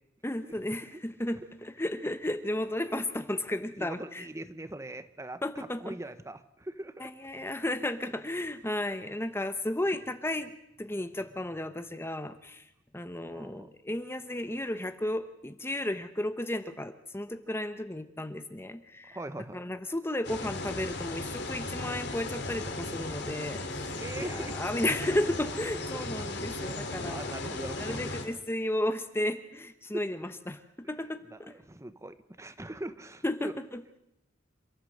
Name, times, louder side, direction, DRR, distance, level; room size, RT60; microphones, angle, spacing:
voice 1, 0.2-4.3 5.4-6.0 7.0-10.5 10.8-12.6 12.9-19.2 19.5-27.3 27.8-31.5 33.2-33.8, left 1 dB, 15° left, 10 dB, 1.0 m, -33 dB
voice 2, 3.8-7.1 13.3-13.7 19.0-19.6 23.9-24.6 25.9-26.3 26.7-28.0 29.9-30.0 31.3-33.5, right 1 dB, 15° right, 11 dB, 1.1 m, -41 dB
sound 1, 20.2-28.2, left 2 dB, 60° left, 3.1 m, -36 dB
28.0 x 14.0 x 7.8 m, 0.86 s
head